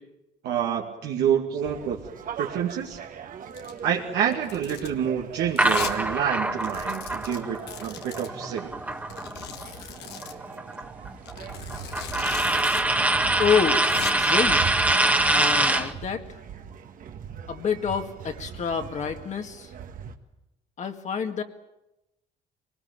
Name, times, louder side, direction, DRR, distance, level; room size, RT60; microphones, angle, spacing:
voice 1, 0.4-2.0 2.4-3.0 3.8-8.7, right 8 dB, 75° right, -1 dB, 2.4 m, -27 dB
sound 1, 1.7-20.2, right 8 dB, 55° right, 1.9 m, -40 dB
Domestic sounds home sounds, 3.5-3.8 4.3-5.0 5.6-6.0 6.3-6.4 6.6-8.3 9.1-10.4 11.3-12.8 13.1-13.2 13.6-14.1, left 9 dB, 80° left, 2.0 m, -39 dB
sound 2, 5.6-9.6 10.0-15.9, right 2 dB, 10° right, 1.6 m, -24 dB
voice 2, 13.4-14.7 15.3-16.2 17.5-19.7 20.8-21.4, left 7 dB, 45° left, 5 dB, 2.0 m, -27 dB
23.5 x 19.5 x 8.9 m, 0.92 s
cardioid pair, 110°, 17 cm